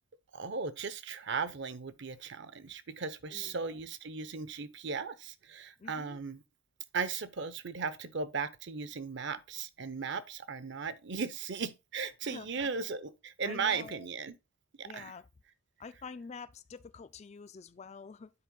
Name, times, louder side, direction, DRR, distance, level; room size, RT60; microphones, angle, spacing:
voice 1, 0.3-6.4 6.9-14.4 14.8-15.1, right 5 dB, 55° right, 0.7 m, -37 dB
voice 2, 3.3-3.8 5.8-6.2 12.2-12.5 13.4-14.1 14.8-15.3 15.8-18.3, left 5 dB, 30° left, 0.3 m, -47 dB
9.9 x 4.4 x 3.8 m
head